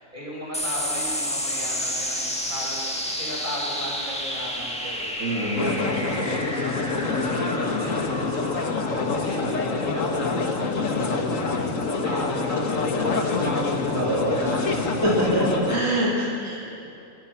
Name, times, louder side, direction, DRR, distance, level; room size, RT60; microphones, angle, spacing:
voice 1, 0.0-15.0 15.9-16.3, equal, 35° right, -4 dB, 7.4 m, -37 dB
sound 1, 0.5-15.3, equal, 5° left, 1.8 m, -32 dB
voice 2, 5.2-5.8 13.9-14.5 15.0-16.8, right 1 dB, 80° right, -6 dB, 4.1 m, -25 dB
sound 2, 5.6-15.8, left 3 dB, 75° left, 2.0 m, -26 dB
25.5 x 23.0 x 5.9 m, 2.7 s
omnidirectional pair, 1.4 m